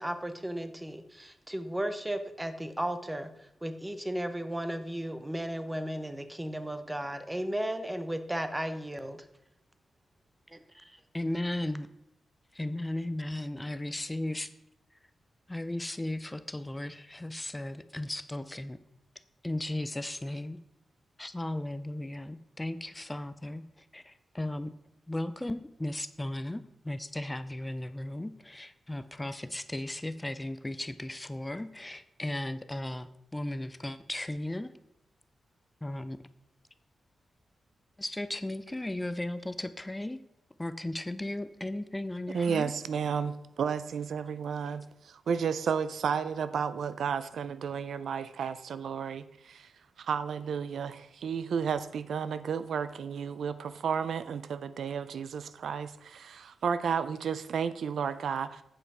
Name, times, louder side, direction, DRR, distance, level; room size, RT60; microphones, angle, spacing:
voice 1, 0.0-9.3 10.5-11.0, right 1 dB, 10° right, 9 dB, 0.8 m, -35 dB
voice 2, 11.1-11.9 12.6-14.5 15.5-18.8 19.4-20.6 21.2-23.6 23.9-24.7 25.1-34.7 35.8-36.2 38.0-40.2 40.6-42.7, left 1 dB, 15° left, 13 dB, 0.4 m, -36 dB
voice 3, 42.3-49.7 50.0-58.6, right 7 dB, 80° right, 14 dB, 0.4 m, -32 dB
8.8 x 5.2 x 4.8 m, 0.84 s
cardioid pair, 80°, 0 cm